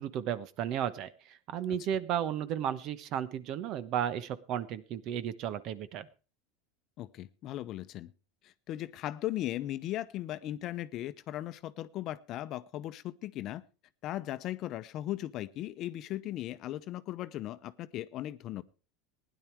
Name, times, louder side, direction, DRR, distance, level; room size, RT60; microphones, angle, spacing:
voice 1, 0.0-6.1, right 9 dB, 50° right, 15 dB, 1.1 m, -34 dB
voice 2, 7.0-8.1 8.4-13.6 14.0-18.6, left 14 dB, 45° left, 13 dB, 0.8 m, -37 dB
16.0 x 10.5 x 4.6 m, 0.34 s
supercardioid pair, 120°, 0 cm